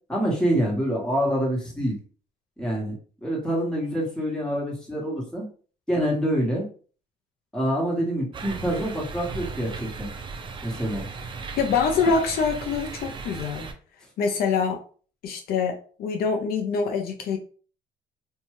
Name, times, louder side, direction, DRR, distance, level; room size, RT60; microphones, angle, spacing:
voice 1, 0.1-2.0 2.6-2.9 3.2-5.4 5.9-6.6 7.5-10.1 10.6-11.1, equal, 5° left, -3 dB, 1.2 m, -26 dB
sound 1, 8.3-13.7, right 4 dB, 30° right, 0.4 m, -36 dB
voice 2, 11.6-13.7 14.2-14.8 15.2-17.4, left 5 dB, 65° left, 4 dB, 0.5 m, -25 dB
2.6 x 2.2 x 3.0 m, 0.41 s
cardioid pair, 110°, 17 cm